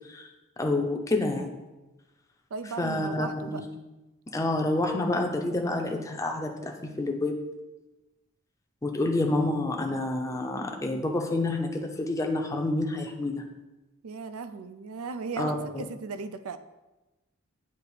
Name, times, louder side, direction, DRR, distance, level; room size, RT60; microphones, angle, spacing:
voice 1, 0.6-1.5 2.8-3.6 4.3-7.4 8.8-13.5 15.4-15.5, left 2 dB, 15° left, 2 dB, 0.5 m, -28 dB
voice 2, 2.5-3.6 14.0-16.6, right 4 dB, 85° right, 11 dB, 0.4 m, -37 dB
8.1 x 2.9 x 4.8 m, 1.1 s
head